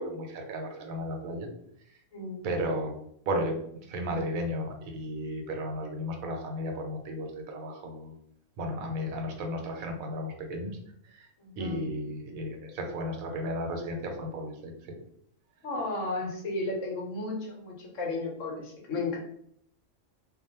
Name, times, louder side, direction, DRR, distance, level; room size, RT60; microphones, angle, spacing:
voice 1, 0.0-1.5 1.9-2.0 2.4-3.6 3.9-8.1 8.6-10.8 11.0-11.3 11.6-15.0, equal, 90° right, 3 dB, 1.1 m, -34 dB
voice 2, 2.1-2.5 11.4-11.8 15.6-19.2, left 2 dB, 70° left, -1 dB, 1.1 m, -34 dB
2.5 x 2.2 x 2.8 m, 0.70 s
omnidirectional pair, 1.4 m